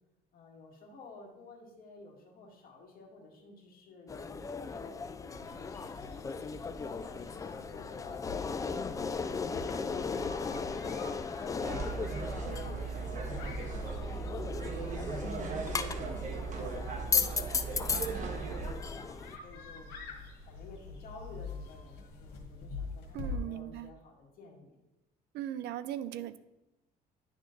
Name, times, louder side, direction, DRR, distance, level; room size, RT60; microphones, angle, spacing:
voice 1, 0.3-6.2 6.6-11.9 12.4-16.5 16.9-24.8, left 3 dB, 60° left, 0 dB, 1.8 m, -53 dB
sound 1, 4.1-19.4, left 5 dB, 20° left, 0.3 m, -37 dB
sound 2, 5.3-23.4, left 3 dB, 85° left, 1.4 m, -46 dB
sound 3, 11.6-18.7, right 5 dB, 45° right, 1.1 m, -38 dB
voice 2, 23.1-23.9 25.3-26.4, right 11 dB, 75° right, 14 dB, 0.5 m, -38 dB
10.5 x 3.6 x 3.8 m, 0.95 s
cardioid pair, 110°, 17 cm